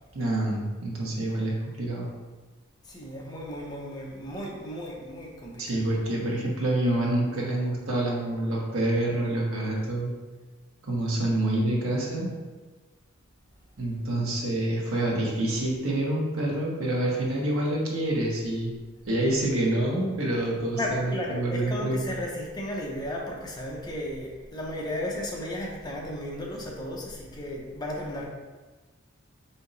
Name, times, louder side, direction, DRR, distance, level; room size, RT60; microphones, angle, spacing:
voice 1, 0.1-2.1 5.6-10.1 10.8-12.3 13.8-18.7 19.1-22.0, right 1 dB, 85° right, -3 dB, 1.1 m, -27 dB
voice 2, 2.8-5.8 20.7-28.2, left 1 dB, 20° left, -2 dB, 0.7 m, -34 dB
4.4 x 2.8 x 4.0 m, 1.3 s
head